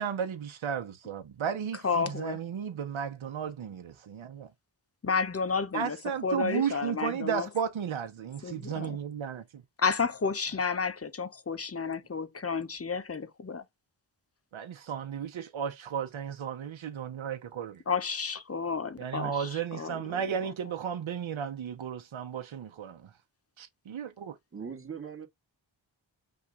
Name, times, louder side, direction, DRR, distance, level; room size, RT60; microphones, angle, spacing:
voice 1, 0.0-4.5 5.7-9.4 14.5-17.8 19.0-23.0 23.6-24.4, right 8 dB, 85° right, 0.8 m, -34 dB
voice 2, 1.8-2.4 5.0-6.0 6.2-7.5 8.4-9.0 9.8-13.6 17.9-20.5, left 5 dB, 30° left, 0.9 m, -31 dB
voice 3, 24.5-25.3, right 6 dB, 30° right, 1.9 m, -40 dB
5.7 x 2.5 x 3.7 m
wide cardioid pair, 85°, 46 cm